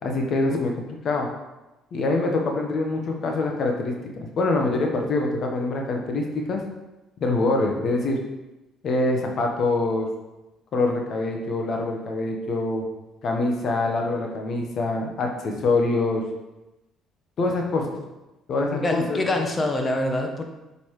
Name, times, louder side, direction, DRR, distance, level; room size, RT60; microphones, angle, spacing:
voice 1, 0.0-1.3 1.9-6.6 7.2-8.2 8.8-10.1 10.7-12.8 13.2-16.2 17.4-18.0 18.5-19.2, left 2 dB, 55° left, 1 dB, 1.1 m, -25 dB
voice 2, 18.7-20.4, left 2 dB, 30° left, 3 dB, 1.1 m, -25 dB
6.1 x 5.4 x 3.2 m, 1.0 s
supercardioid pair, 80°, 0 cm